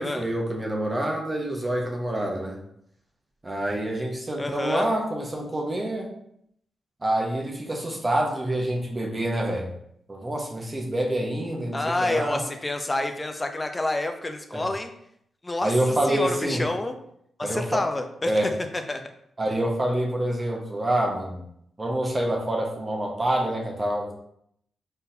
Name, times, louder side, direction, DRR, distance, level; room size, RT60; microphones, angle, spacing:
voice 1, 0.0-2.6 3.4-6.1 7.0-9.7 10.1-12.4 14.5-14.7 15.6-16.6 17.4-17.8 18.3-18.5 19.4-21.4 21.8-24.3, right 1 dB, 25° right, -1 dB, 1.0 m, -27 dB
voice 2, 4.4-4.9 11.7-14.9 15.4-15.7 16.1-17.0 17.4-18.3 18.7-19.0, left 2 dB, 25° left, 6 dB, 0.6 m, -28 dB
4.0 x 3.9 x 2.7 m, 0.72 s
cardioid pair, 70°, 0 cm